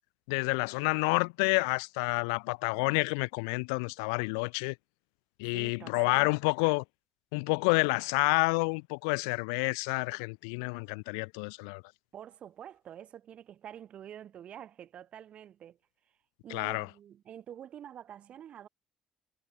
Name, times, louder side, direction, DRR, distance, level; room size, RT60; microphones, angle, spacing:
voice 1, 0.3-4.7 5.4-6.8 7.3-11.8 16.5-16.9, left 34 dB, 80° left, 0.5 m, -29 dB
voice 2, 5.4-6.4 12.1-15.8 16.4-18.7, right 10 dB, 60° right, 5.3 m, -47 dB
hypercardioid pair, 50°, 2 cm